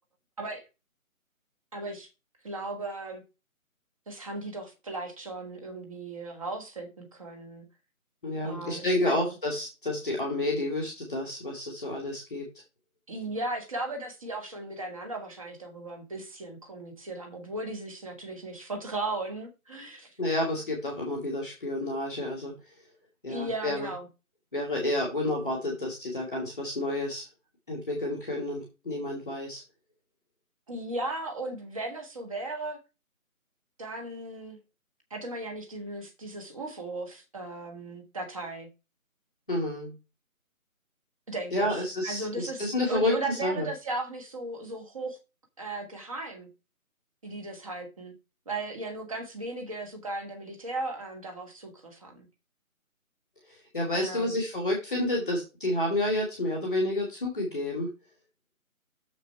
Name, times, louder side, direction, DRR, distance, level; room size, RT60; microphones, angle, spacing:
voice 1, 1.7-2.1 2.4-3.2 4.1-7.6 8.4-9.4 13.1-20.1 23.3-24.1 30.7-32.8 33.8-34.6 35.1-38.7 41.3-45.2 45.6-46.5 47.2-48.1 48.4-52.3 53.9-54.4, right 2 dB, 25° right, 1.4 m, -36 dB
voice 2, 8.2-12.5 20.2-22.5 23.2-23.9 24.5-27.3 27.7-29.6 39.5-39.9 41.5-43.7 53.5-57.9, left 1 dB, 5° left, 0.8 m, -30 dB
6.9 x 6.4 x 4.3 m
figure-of-eight pair, 155°, 43 cm